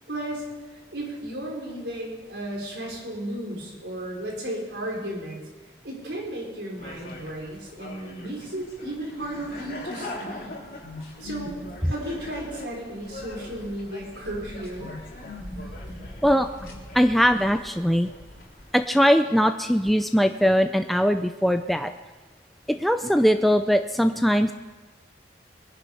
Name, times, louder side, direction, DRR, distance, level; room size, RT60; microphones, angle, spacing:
voice 1, 0.1-0.4 0.9-5.4 5.8-10.6 11.2-11.5 11.9-14.9, right 1 dB, 80° right, -2 dB, 5.0 m, -34 dB
sound 1, 6.7-18.8, left 1 dB, 50° left, 3.6 m, -41 dB
sound 2, 10.8-13.4 14.8-17.2, left 2 dB, 30° right, 3.7 m, -42 dB
voice 2, 16.9-18.1 18.7-21.9 22.7-24.5, equal, ahead, 7 dB, 0.4 m, -21 dB
22.0 x 10.5 x 5.6 m, 1.3 s
head